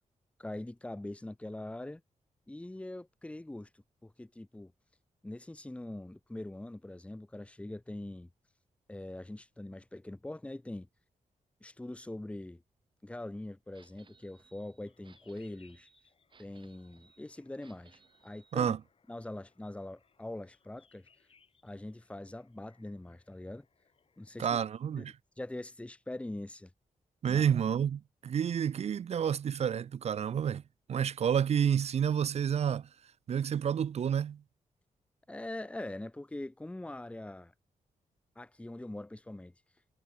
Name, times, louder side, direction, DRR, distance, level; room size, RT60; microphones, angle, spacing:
voice 1, 0.4-2.0 2.5-4.7 5.2-8.3 8.9-10.9 11.6-12.6 13.0-15.9 16.4-18.8 19.1-21.1 21.6-23.7 24.2-24.6 25.0-26.7 27.3-27.4 35.3-37.5 38.4-39.5, left 1 dB, 10° left, 1.8 m, -43 dB
sound 1, 13.7-18.6, right 5 dB, 40° right, 2.8 m, -64 dB
sound 2, 14.8-24.6, left 6 dB, 45° left, 5.4 m, -70 dB
voice 2, 24.4-25.1 27.2-30.6 30.9-32.9 33.3-34.4, right 8 dB, 55° right, 0.5 m, -29 dB
wide cardioid pair, 160°, 13 cm